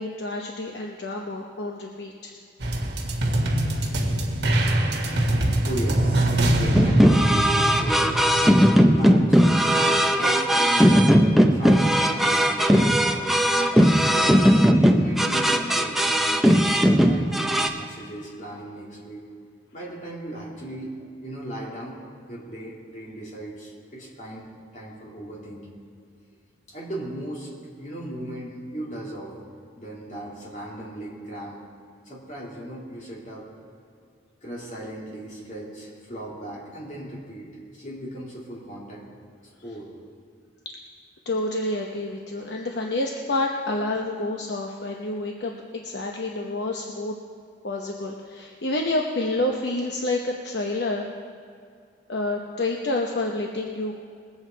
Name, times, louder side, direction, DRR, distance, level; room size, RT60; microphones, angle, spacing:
voice 1, 0.0-2.3 41.3-47.2 47.6-51.1 52.1-54.0, left 2 dB, 65° left, 1 dB, 0.8 m, -28 dB
sound 1, 2.6-9.1, right 1 dB, 65° right, 1.6 m, -24 dB
voice 2, 5.6-13.4 14.0-16.4 16.6-19.2 19.7-22.0 22.3-24.5 24.7-25.7 26.7-27.5 27.8-29.3 29.8-31.6 32.0-33.5 34.4-37.5 37.7-39.0 39.6-39.9, right 1 dB, 40° left, -5 dB, 3.2 m, -37 dB
sound 2, 6.7-17.7, equal, ahead, 0.5 m, -18 dB
20.5 x 8.1 x 4.5 m, 2.2 s
head